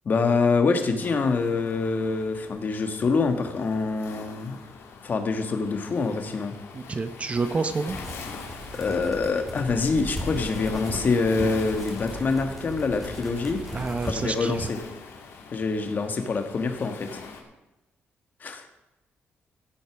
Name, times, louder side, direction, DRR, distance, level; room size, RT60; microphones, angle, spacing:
voice 1, 0.0-4.6 5.0-6.6 8.8-13.6 14.0-14.8 15.5-17.1 18.4-18.7, left 4 dB, 45° left, 6 dB, 1.6 m, -25 dB
Waves surf, 1.0-17.4, left 5 dB, 85° left, 2.3 m, -43 dB
voice 2, 6.7-8.0 13.7-14.7, right 4 dB, 30° right, 10 dB, 0.8 m, -28 dB
sound 1, 7.9-14.8, equal, ahead, 3.5 m, -37 dB
15.0 x 8.1 x 6.2 m, 1.0 s
cardioid pair, 130°, 4 cm